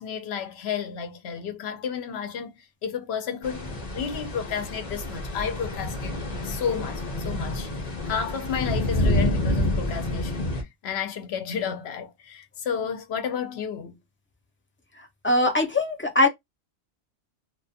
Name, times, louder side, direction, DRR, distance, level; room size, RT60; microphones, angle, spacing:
voice 1, 0.0-6.2 6.4-14.0, left 7 dB, 65° left, 0.8 m, -32 dB
sound 1, 3.4-10.6, left 1 dB, 40° left, 0.8 m, -28 dB
voice 2, 15.0-16.3, left 2 dB, 20° left, 0.3 m, -22 dB
2.4 x 2.3 x 2.5 m
omnidirectional pair, 1.2 m